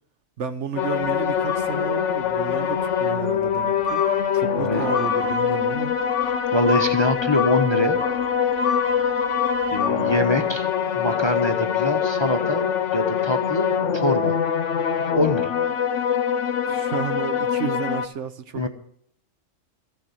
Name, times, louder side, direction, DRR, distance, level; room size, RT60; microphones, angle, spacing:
voice 1, 0.4-4.1 4.3-5.9 16.7-18.7, right 7 dB, 65° right, 1.1 m, -32 dB
sound 1, 0.8-18.1, left 8 dB, 65° left, 1.1 m, -24 dB
sound 2, 1.5-2.2 2.6-3.2 3.8-10.2, left 4 dB, 10° right, 1.8 m, -30 dB
voice 2, 6.5-8.0 9.7-10.7 11.0-12.7 12.9-14.4 15.1-15.5 18.5-18.7, left 1 dB, 25° left, 0.8 m, -24 dB
14.5 x 6.8 x 7.8 m
omnidirectional pair, 1.4 m